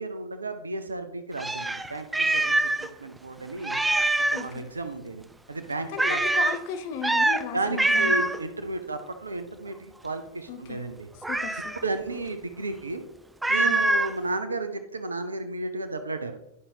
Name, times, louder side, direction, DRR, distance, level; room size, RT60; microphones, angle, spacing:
voice 1, 0.0-3.8 4.3-5.2 5.5-6.2 7.5-11.1 11.8-13.0 13.5-16.3, right 2 dB, 75° right, 9 dB, 0.6 m, -33 dB
Meow, 1.4-2.9 3.2-3.3 3.6-4.5 6.0-6.6 7.0-7.4 7.8-8.4 11.2-11.8 13.4-14.1, right 2 dB, 5° right, 0.3 m, -24 dB
voice 2, 4.3-4.7 5.9-8.3 10.5-10.8 11.3-11.7 13.6-13.9, left 7 dB, 50° left, 7 dB, 0.6 m, -35 dB
11.0 x 5.6 x 2.7 m, 0.89 s
figure-of-eight pair, 90°, 0 cm